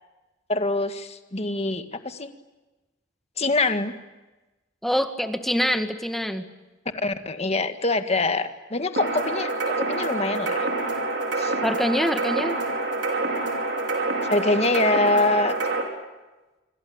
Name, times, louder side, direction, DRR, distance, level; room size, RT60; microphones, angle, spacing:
voice 1, 0.5-2.3 3.4-3.9 7.0-10.7 11.4-11.5 14.3-15.6, left 2 dB, 35° left, 8 dB, 1.8 m, -24 dB
voice 2, 4.8-6.4 11.6-12.6, equal, ahead, 7 dB, 1.7 m, -25 dB
sound 1, 9.0-15.8, right 2 dB, 75° right, 5.3 m, -27 dB
27.0 x 24.5 x 8.8 m, 1.1 s
head